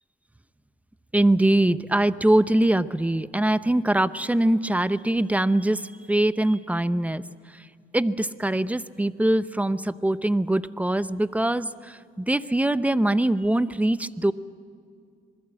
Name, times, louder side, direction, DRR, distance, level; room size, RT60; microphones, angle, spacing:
voice 1, 1.1-7.2 7.9-14.3, right 1 dB, 5° right, 14 dB, 0.7 m, -23 dB
26.0 x 21.0 x 7.8 m, 2.3 s
cardioid pair, 90°, 20 cm